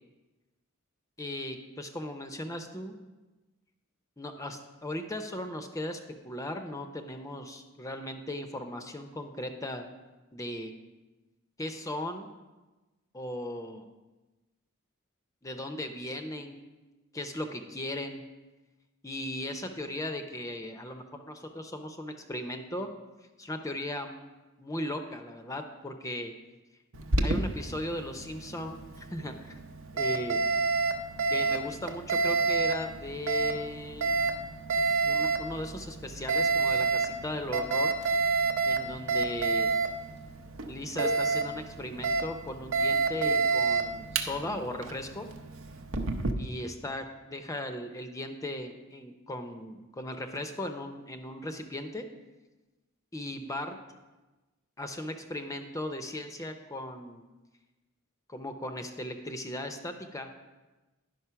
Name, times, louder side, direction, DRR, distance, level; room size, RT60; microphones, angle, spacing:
voice 1, 1.2-2.9 4.2-9.8 10.3-10.7 11.6-12.3 13.1-13.9 15.4-16.6 17.1-18.2 19.0-22.9 23.4-24.2 24.6-26.3 27.2-29.6 29.9-30.4 31.3-34.1 35.1-37.9 38.7-39.7 40.7-45.3 46.4-52.0 53.1-53.8 54.8-57.2 58.3-60.4, left 1 dB, 15° left, 6 dB, 0.6 m, -37 dB
Alarm, 26.9-46.3, right 4 dB, 70° right, 0.8 m, -29 dB
11.0 x 5.3 x 5.7 m, 1.1 s
head